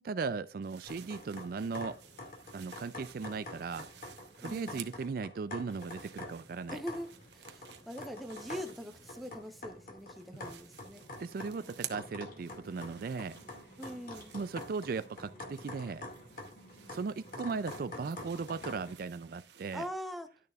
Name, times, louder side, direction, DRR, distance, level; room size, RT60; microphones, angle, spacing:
voice 1, 0.0-2.0 2.5-3.9 4.4-6.8 11.2-13.4 14.3-16.0 16.9-19.9, right 4 dB, 50° right, 0.3 m, -37 dB
sound 1, 0.6-5.2 5.5-9.7 10.0-19.9, right 11 dB, 70° right, 0.8 m, -53 dB
sound 2, 0.9-19.0, left 2 dB, 50° left, 2.3 m, -47 dB
voice 2, 4.4-4.9 6.7-7.1 7.3-11.0 13.8-14.3 19.7-20.3, equal, ahead, 0.8 m, -42 dB
12.0 x 6.7 x 2.4 m
head